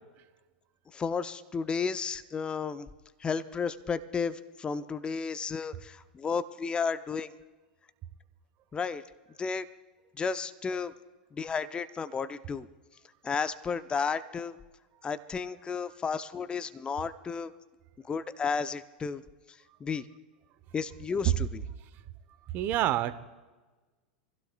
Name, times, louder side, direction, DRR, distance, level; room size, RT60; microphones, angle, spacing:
voice 1, 0.9-2.9 3.2-7.3 8.7-9.0 9.4-9.6 10.2-10.9 11.3-12.7 13.2-14.6 15.0-17.5 18.1-19.2 19.8-20.0 20.7-21.6, left 5 dB, 20° left, 13 dB, 0.7 m, -32 dB
voice 2, 22.5-23.2, right 13 dB, 40° right, 13 dB, 0.9 m, -28 dB
25.5 x 16.0 x 2.3 m, 1.3 s
figure-of-eight pair, 90°, 5 cm